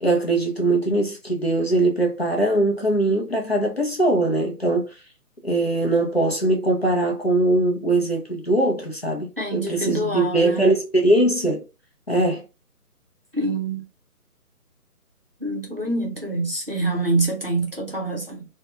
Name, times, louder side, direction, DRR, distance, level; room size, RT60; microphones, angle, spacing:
voice 1, 0.0-4.9 5.4-11.6 12.1-12.4, right 2 dB, 45° left, 0.5 m, -21 dB
voice 2, 9.4-10.7 13.3-13.9 15.4-18.4, right 2 dB, 40° right, 0.6 m, -26 dB
2.7 x 2.2 x 2.4 m
hypercardioid pair, 180°, 46 cm